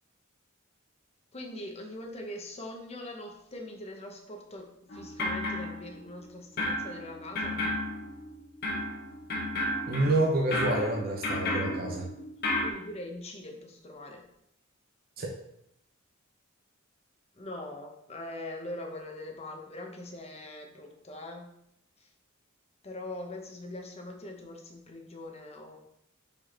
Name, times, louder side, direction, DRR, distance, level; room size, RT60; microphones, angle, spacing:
voice 1, 1.3-7.6 12.6-14.2 17.3-21.5 22.0-22.1 22.8-25.8, left 1 dB, 30° left, 2 dB, 1.0 m, -42 dB
sound 1, 4.9-6.2 6.6-12.7, left 1 dB, 50° left, 1.4 m, -33 dB
voice 2, 9.9-12.0 15.2-15.3, right 2 dB, 45° right, 0 dB, 0.8 m, -28 dB
5.1 x 4.5 x 4.4 m, 0.76 s
head